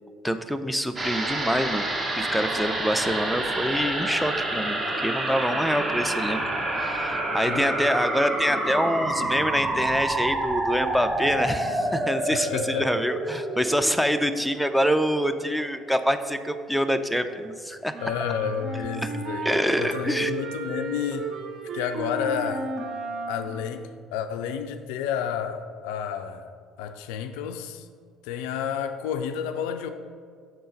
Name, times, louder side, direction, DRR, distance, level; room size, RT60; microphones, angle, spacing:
voice 1, 0.2-1.9 2.1-6.4 6.7-17.9 19.0-19.1 19.4-20.3, equal, ahead, 0.4 m, -26 dB
sound 1, 1.0-15.6 15.9-16.0, right 1 dB, 30° right, 1.1 m, -28 dB
voice 2, 12.3-12.9 18.0-21.3 21.7-22.7 23.3-26.5 26.8-27.9 28.2-29.9, left 8 dB, 65° left, 0.3 m, -30 dB
sound 2, 17.9-23.7, right 3 dB, 50° right, 0.7 m, -34 dB
6.4 x 3.8 x 5.3 m
figure-of-eight pair, 55°, 0 cm